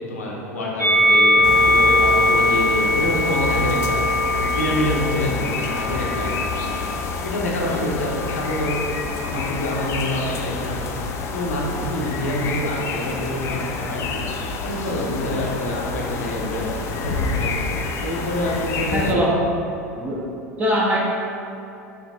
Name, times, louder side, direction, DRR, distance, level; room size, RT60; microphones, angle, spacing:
voice 1, 0.1-4.0 4.3-6.8 7.2-8.8 9.2-10.9 11.3-14.2 14.6-17.7 18.0-19.1, left 1 dB, 75° left, -3 dB, 0.8 m, -27 dB
Musical instrument, 0.8-7.2 8.0-9.0, left 1 dB, 80° right, 1.2 m, -21 dB
sound 1, 1.4-19.1, left 4 dB, 35° left, 0.4 m, -28 dB
voice 2, 18.9-19.3 19.9-20.2 20.6-21.0, equal, 20° right, -5 dB, 0.9 m, -21 dB
6.0 x 3.4 x 2.4 m, 2.7 s
figure-of-eight pair, 80°, 8 cm